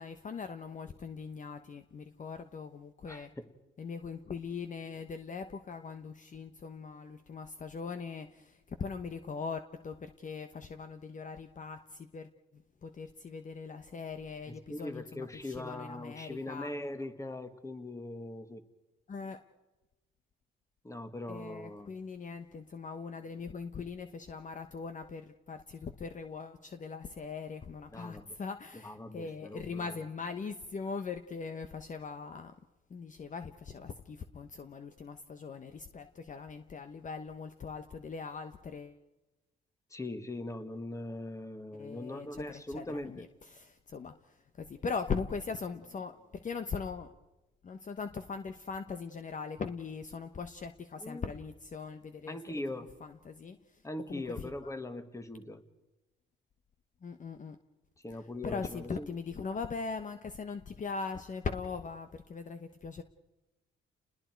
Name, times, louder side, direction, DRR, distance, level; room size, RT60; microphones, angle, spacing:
voice 1, 0.0-3.3 3.8-16.7 19.1-19.4 21.3-32.5 32.9-39.0 41.7-42.4 42.7-47.1 47.6-52.4 53.0-53.8 54.1-54.7 57.0-57.6 58.4-63.0, left 5 dB, 40° left, 9 dB, 1.1 m, -40 dB
voice 2, 3.1-3.4 14.5-18.6 20.8-21.9 27.9-28.4 28.8-30.0 39.9-43.2 51.0-51.3 52.3-52.9 53.8-55.6 58.0-59.1, left 1 dB, 15° left, 9 dB, 1.9 m, -41 dB
29.5 x 20.5 x 4.6 m, 1.0 s
cardioid pair, 90°, 20 cm